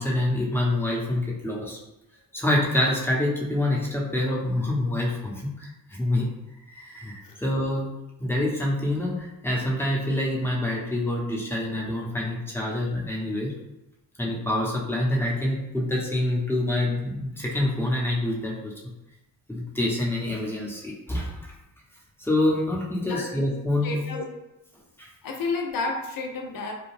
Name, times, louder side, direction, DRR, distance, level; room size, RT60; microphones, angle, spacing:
voice 1, 0.0-1.8 2.3-6.3 6.7-7.9 8.2-13.5 14.2-18.7 19.5-21.5 22.2-24.2 25.0-25.1, left 1 dB, 5° left, -4 dB, 0.9 m, -26 dB
voice 2, 23.8-24.2 25.2-26.7, left 3 dB, 55° left, 1 dB, 0.7 m, -30 dB
2.3 x 2.2 x 3.2 m, 0.95 s
supercardioid pair, 50°, 41 cm